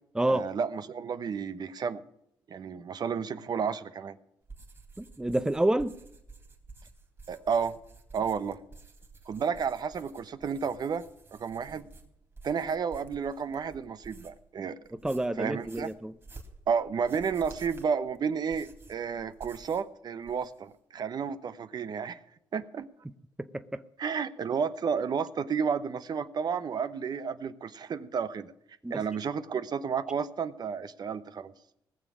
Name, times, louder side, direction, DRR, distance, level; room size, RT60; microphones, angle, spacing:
voice 1, 0.3-2.0 2.5-4.2 7.3-7.8 8.1-8.6 9.3-11.9 12.4-14.8 15.4-15.9 16.7-22.2 22.5-22.9 24.0-28.5 28.9-31.5, right 6 dB, 55° right, 0.9 m, -32 dB
sound 1, 4.4-14.5 14.8-19.9 20.2-20.7, right 3 dB, 30° right, 3.4 m, -52 dB
voice 2, 5.0-5.9 15.0-16.1 28.8-29.0, right 1 dB, 10° right, 0.6 m, -28 dB
19.0 x 7.1 x 6.1 m
cardioid pair, 85°, 8 cm